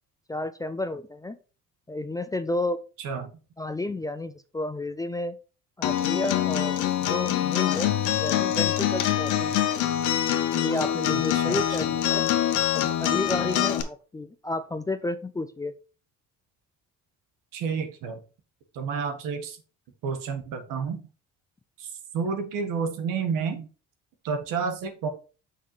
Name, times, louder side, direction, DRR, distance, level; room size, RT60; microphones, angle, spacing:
voice 1, 0.3-1.4 1.9-2.8 3.6-5.4 5.8-7.9 8.2-9.6 10.6-12.3 12.7-15.7, left 2 dB, 10° left, 12 dB, 0.3 m, -31 dB
voice 2, 3.0-3.3 11.1-11.6 17.5-18.2 18.7-19.6 20.0-21.0 21.8-23.7 24.2-25.1, right 5 dB, 85° right, 6 dB, 1.5 m, -30 dB
Acoustic guitar, 5.8-13.8, left 11 dB, 70° left, 1.0 m, -25 dB
6.3 x 5.7 x 3.2 m, 0.35 s
cardioid pair, 125°, 32 cm